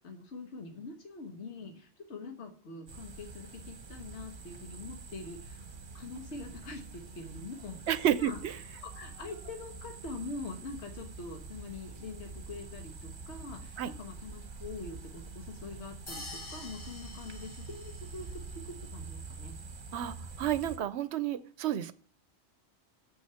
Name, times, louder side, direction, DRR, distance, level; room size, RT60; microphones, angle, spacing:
voice 1, 0.0-5.7 5.9-8.4 8.7-18.3 18.5-19.6, left 3 dB, 75° left, 4 dB, 1.5 m, -44 dB
sound 1, 2.9-20.8, right 4 dB, 45° right, 1.1 m, -46 dB
voice 2, 7.9-8.5 13.8-13.9 19.9-21.9, right 10 dB, 75° right, 15 dB, 0.9 m, -31 dB
sound 2, 16.1-18.4, left 2 dB, 25° left, 1.3 m, -46 dB
7.2 x 6.3 x 5.6 m, 0.40 s
omnidirectional pair, 1.2 m